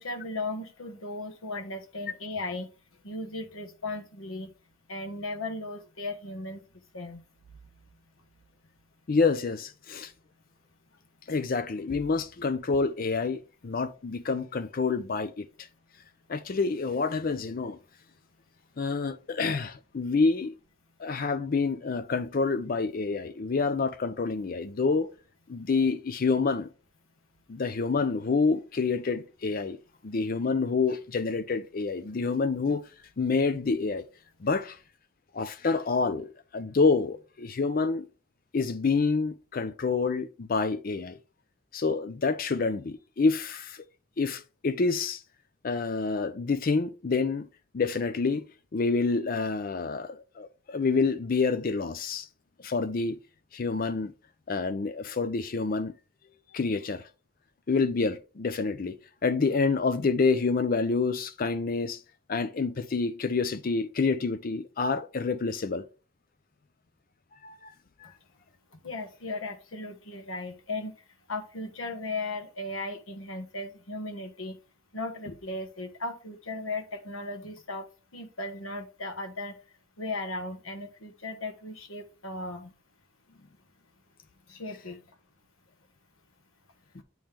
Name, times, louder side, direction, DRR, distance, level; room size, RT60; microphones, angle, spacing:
voice 1, 0.0-2.7 3.0-4.5 4.9-6.6 6.9-7.2 68.0-68.1 68.7-74.6 74.9-77.9 78.1-79.6 80.0-82.7 84.5-85.0, left 2 dB, 85° left, 1.3 m, -36 dB
voice 2, 9.1-10.1 11.3-15.7 16.3-17.8 18.8-20.5 21.0-25.1 25.5-26.7 27.5-29.8 30.0-32.8 33.2-34.1 34.4-34.8 35.3-38.1 38.5-41.2 41.7-43.9 44.2-45.2 45.6-47.5 47.7-48.4 48.7-52.3 52.6-53.2 53.5-54.1 54.5-55.9 56.5-57.0 57.7-59.0 59.2-62.0 62.3-65.8 67.4-67.7 87.0-87.1, left 4 dB, 45° left, 0.5 m, -27 dB
8.7 x 3.1 x 3.5 m
head